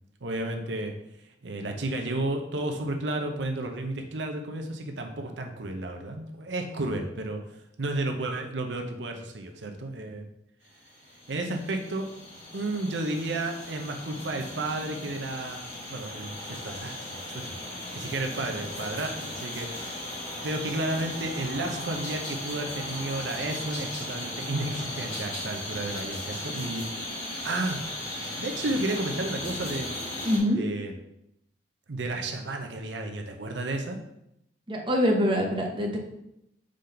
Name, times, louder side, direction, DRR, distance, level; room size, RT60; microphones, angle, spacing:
voice 1, 0.2-0.9 1.4-7.4 7.8-10.3 11.3-12.1 12.5-16.3 16.6-17.6 17.9-20.1 20.4-26.9 27.3-27.8 28.4-29.9 30.5-30.9 31.9-34.0, right 2 dB, 85° right, 4 dB, 0.8 m, -32 dB
sound 1, 10.8-30.4, left 1 dB, 45° left, 2.3 m, -37 dB
voice 2, 30.2-30.6 34.7-36.0, equal, 30° right, 0 dB, 1.0 m, -24 dB
5.0 x 3.9 x 5.6 m, 0.80 s
head